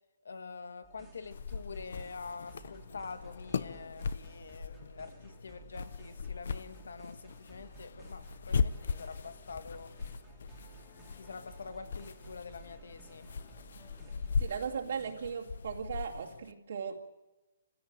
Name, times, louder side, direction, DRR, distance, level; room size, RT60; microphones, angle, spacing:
voice 1, 0.2-9.9 11.2-13.3, left 4 dB, 80° left, 1.8 m, -46 dB
sound 1, 0.8-15.1, right 5 dB, 5° right, 2.4 m, -55 dB
sound 2, 1.3-16.5, left 5 dB, 55° left, 0.8 m, -39 dB
voice 2, 14.4-17.0, right 6 dB, 55° right, 2.4 m, -37 dB
27.0 x 16.5 x 9.1 m
hypercardioid pair, 175°, 0 cm